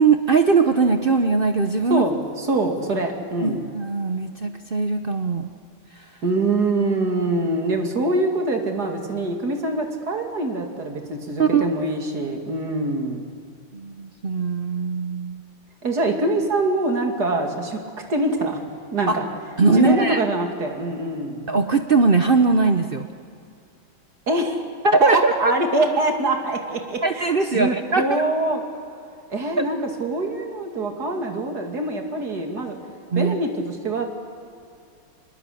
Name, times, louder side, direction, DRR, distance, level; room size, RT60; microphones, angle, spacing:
voice 1, 0.0-2.0 3.4-5.5 11.4-11.7 13.7-15.4 19.1-19.2 19.6-20.2 21.5-23.1 24.8-25.5 27.0-28.2 33.1-33.3, right 4 dB, 75° right, 7 dB, 0.5 m, -20 dB
voice 2, 1.9-3.6 6.2-13.3 15.8-17.8 18.1-18.6 18.9-19.3 19.7-21.4 24.3-24.6 25.0-28.6 29.3-32.8 33.1-34.0, right 2 dB, 50° right, 3 dB, 3.1 m, -24 dB
25.5 x 21.0 x 8.5 m, 2.5 s
omnidirectional pair, 2.3 m